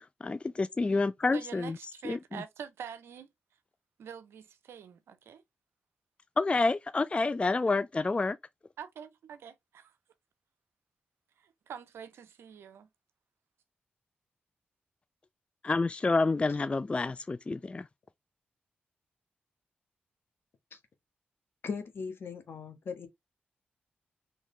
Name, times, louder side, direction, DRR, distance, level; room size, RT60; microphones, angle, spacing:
voice 1, 0.0-1.8 2.0-2.4 6.4-8.4 15.6-17.9, left 3 dB, 30° left, 0.3 m, -28 dB
voice 2, 1.3-3.3 4.0-5.4 8.8-9.9 11.4-12.9, right 8 dB, 85° right, 0.7 m, -45 dB
voice 3, 21.6-23.1, left 5 dB, 65° left, 1.4 m, -38 dB
4.8 x 3.2 x 3.2 m
cardioid pair, 50°, 4 cm